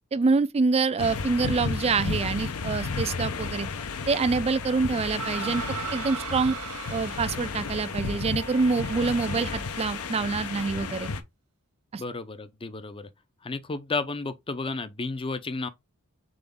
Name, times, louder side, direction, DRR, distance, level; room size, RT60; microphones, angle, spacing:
voice 1, 0.1-3.7 4.1-5.6 5.9-6.6 6.9-11.1 11.9-12.0, right 4 dB, 30° right, 0.4 m, -26 dB
sound 1, 1.0-11.2, left 4 dB, 70° left, 0.7 m, -33 dB
sound 2, 5.2-10.2, right 5 dB, 75° right, 1.4 m, -39 dB
voice 2, 12.0-13.1 13.4-15.7, left 3 dB, 25° left, 0.5 m, -32 dB
3.9 x 3.8 x 3.5 m
head